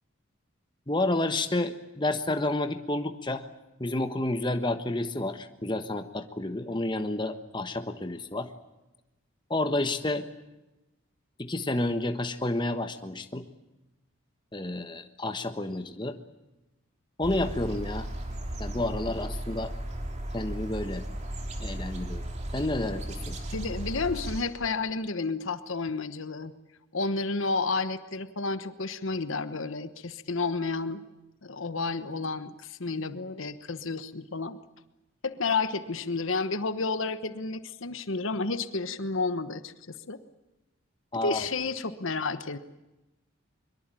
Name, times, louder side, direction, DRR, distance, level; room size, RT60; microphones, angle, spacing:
voice 1, 0.9-3.4 3.8-8.5 9.5-10.3 11.4-13.4 14.5-16.2 17.2-18.1 18.6-19.7 20.3-21.0 21.6-22.2 22.5-23.4 41.1-41.4, left 2 dB, 20° left, 8 dB, 1.2 m, -30 dB
sound 1, 17.2-24.4, right 1 dB, 30° right, 3.1 m, -35 dB
voice 2, 23.5-26.5 26.9-31.0 31.4-34.6 35.2-40.2 41.1-42.6, left 3 dB, 70° left, 12 dB, 1.1 m, -31 dB
23.0 x 22.5 x 9.0 m, 1.0 s
head